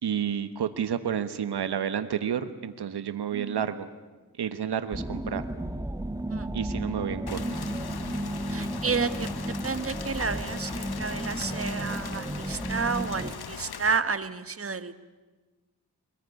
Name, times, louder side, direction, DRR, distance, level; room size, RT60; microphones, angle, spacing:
voice 1, 0.0-3.9 4.4-5.4 6.5-7.4, right 8 dB, 85° right, 11 dB, 1.3 m, -30 dB
voice 2, 3.3-3.6 6.3-6.5 8.5-9.3 9.6-14.9, right 5 dB, 35° right, 12 dB, 1.4 m, -31 dB
sound 1, 4.9-13.4, right 1 dB, 10° right, 1.3 m, -33 dB
Rain, 7.3-14.0, left 7 dB, 75° left, 1.4 m, -40 dB
23.0 x 20.0 x 9.8 m, 1.3 s
cardioid pair, 70°, 39 cm